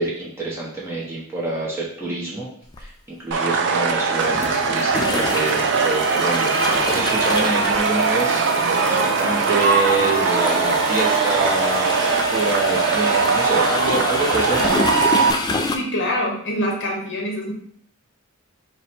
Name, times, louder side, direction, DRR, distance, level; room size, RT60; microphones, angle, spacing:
voice 1, 0.0-2.5 2.8-8.5 8.8-14.7, right 2 dB, 10° right, -6 dB, 0.8 m, -26 dB
sound 1, 2.7-2.9 4.2-15.8, left 2 dB, 20° left, 0.3 m, -28 dB
sound 2, 3.3-15.3, right 4 dB, 55° right, 0.5 m, -20 dB
voice 2, 15.7-17.5, equal, 55° left, -1 dB, 0.8 m, -25 dB
4.5 x 2.2 x 4.2 m, 0.62 s
head